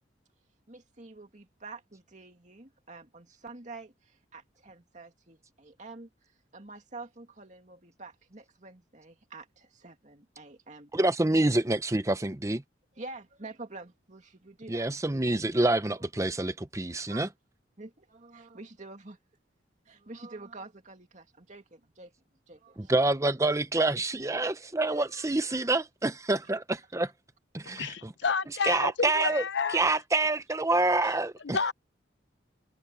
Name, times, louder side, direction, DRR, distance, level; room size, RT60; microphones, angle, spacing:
voice 1, 0.7-6.1 6.5-10.9 13.0-14.9 16.0-16.1 17.1-17.3 17.8-19.2 19.9-22.1 22.5-22.9 24.2-25.7 29.2-29.3, right 3 dB, 40° right, 2.4 m, -47 dB
voice 2, 10.9-12.6 14.7-17.3 22.8-27.1 27.5-28.1 28.6-29.4 29.7-31.6, right 2 dB, 15° right, 0.7 m, -27 dB
voice 3, 27.7-29.9 31.4-31.7, left 5 dB, 65° left, 0.8 m, -30 dB
head